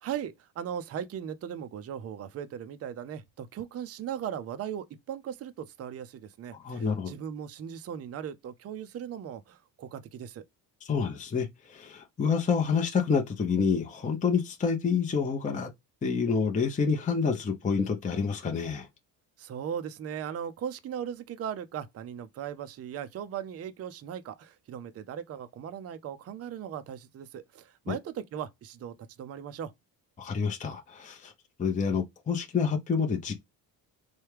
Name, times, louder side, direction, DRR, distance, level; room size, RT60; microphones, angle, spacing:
voice 1, 0.0-10.4 19.4-29.7, right 9 dB, 30° right, 0.5 m, -38 dB
voice 2, 6.6-7.1 10.8-15.7 16.0-18.9 27.9-28.0 30.2-31.3 31.6-33.3, left 5 dB, 15° left, 0.6 m, -28 dB
3.2 x 2.3 x 3.2 m
supercardioid pair, 70°, 50 cm